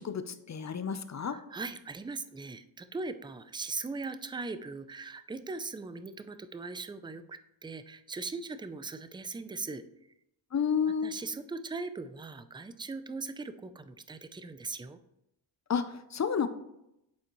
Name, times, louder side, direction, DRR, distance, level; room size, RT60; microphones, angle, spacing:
voice 1, 0.0-1.4 10.5-11.2 15.7-16.5, left 7 dB, 35° left, 10 dB, 0.6 m, -31 dB
voice 2, 1.2-9.8 10.8-15.0, right 3 dB, 10° right, 12 dB, 0.4 m, -40 dB
9.4 x 4.2 x 3.0 m, 0.84 s
cardioid pair, 55°, 50 cm